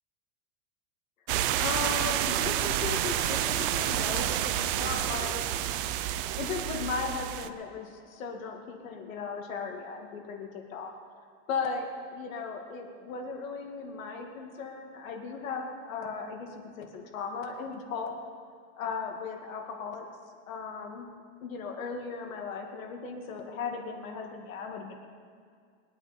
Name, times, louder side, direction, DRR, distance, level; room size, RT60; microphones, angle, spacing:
sound 1, 1.3-7.5, right 12 dB, 45° right, 0.6 m, -29 dB
voice 1, 1.6-5.4 6.4-10.9 11.5-16.5 16.8-18.2 18.8-20.1 20.5-21.0 21.4-25.0, left 5 dB, 90° left, 2 dB, 2.3 m, -36 dB
22.5 x 9.0 x 4.4 m, 2.2 s
supercardioid pair, 155°, 39 cm